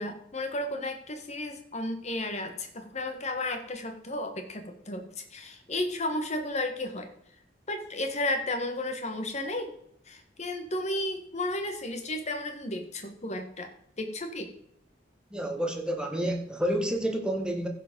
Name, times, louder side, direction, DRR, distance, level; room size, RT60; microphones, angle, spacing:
voice 1, 0.0-5.0 5.3-7.1 7.7-9.7 10.1-13.7 14.0-14.5, left 1 dB, 35° left, 5 dB, 1.4 m, -33 dB
voice 2, 15.3-17.7, equal, 5° right, 2 dB, 1.4 m, -29 dB
15.0 x 5.1 x 5.2 m, 0.70 s
head